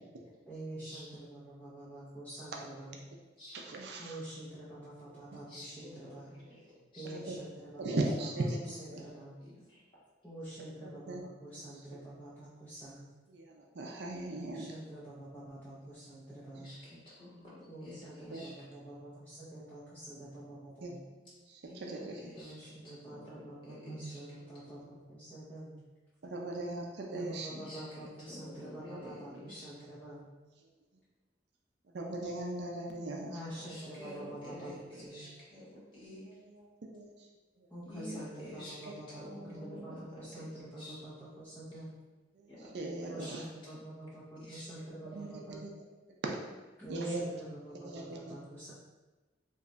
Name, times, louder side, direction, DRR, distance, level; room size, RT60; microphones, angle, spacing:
voice 1, 0.5-3.0 4.0-6.3 6.9-9.4 10.2-13.0 14.5-16.7 17.7-21.0 22.4-25.8 27.1-30.3 33.3-35.3 37.7-41.9 43.1-45.7 46.8-48.7, right 1 dB, 10° left, -11 dB, 0.7 m, -47 dB
voice 2, 3.5-4.2 5.3-5.4 7.0-7.4 7.8-9.0 10.8-11.2 13.3-14.7 18.3-18.5 20.8-20.9 21.3-22.3 26.2-27.5 31.9-33.4 36.3-36.7 36.9-37.3 37.6-37.7 38.9-39.0 42.3-43.4 45.0-45.9 46.2-46.4 46.9-47.3 47.8-48.4, right 2 dB, 65° right, 0 dB, 0.5 m, -38 dB
voice 3, 5.3-7.1 9.4-9.8 16.5-18.5 21.6-24.2 27.5-29.7 33.5-36.4 37.8-40.5 40.8-41.0 42.5-43.3 44.4-44.6, left 1 dB, 30° left, -10 dB, 1.4 m, -49 dB
3.1 x 2.3 x 3.8 m, 1.2 s
head